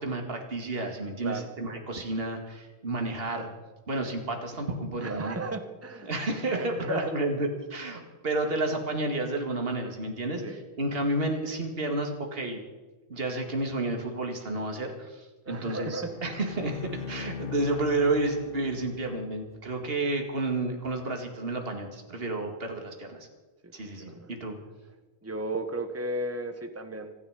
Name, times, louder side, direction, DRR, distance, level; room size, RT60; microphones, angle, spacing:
voice 1, 0.0-3.5 3.9-5.4 6.1-12.6 13.1-23.3 23.7-24.6, right 2 dB, 45° right, 3 dB, 2.4 m, -31 dB
voice 2, 5.0-6.1 6.5-7.1 8.0-8.1 10.4-10.6 15.4-16.1 23.6-23.7 24.0-24.3 25.2-27.1, right 2 dB, 10° right, 7 dB, 1.2 m, -34 dB
Bowed string instrument, 16.0-19.6, left 7 dB, 55° left, 0.8 m, -41 dB
26.0 x 10.5 x 5.1 m, 1.2 s
omnidirectional pair, 1.4 m